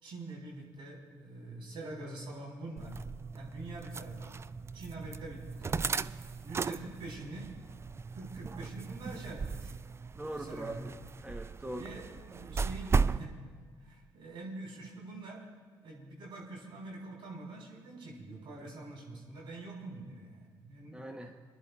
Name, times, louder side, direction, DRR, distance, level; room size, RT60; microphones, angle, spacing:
voice 1, 0.0-3.0 3.3-4.4 4.7-6.0 6.4-7.5 8.1-9.7 10.4-10.8 11.8-13.4 13.8-15.4 15.8-21.0, right 2 dB, 65° right, -2 dB, 3.7 m, -45 dB
sound 1, 2.8-13.2, right 5 dB, 30° right, 0.3 m, -36 dB
voice 2, 10.1-10.9 11.2-11.9 20.9-21.4, right 1 dB, 10° right, 3 dB, 1.0 m, -41 dB
27.0 x 11.0 x 2.4 m, 1.5 s
hypercardioid pair, 50°, 9 cm